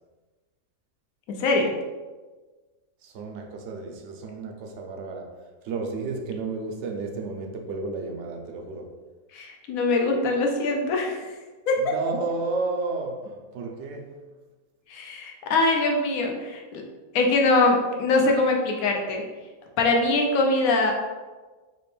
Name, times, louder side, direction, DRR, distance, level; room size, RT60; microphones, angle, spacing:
voice 1, 1.4-1.7 9.3-11.3 11.7-11.9 14.9-16.8 17.1-19.2 19.8-20.9, left 2 dB, 80° left, 1 dB, 1.1 m, -23 dB
voice 2, 3.0-8.9 11.8-14.2, right 3 dB, 65° right, 3 dB, 0.8 m, -32 dB
4.2 x 3.0 x 3.2 m, 1.3 s
omnidirectional pair, 1.5 m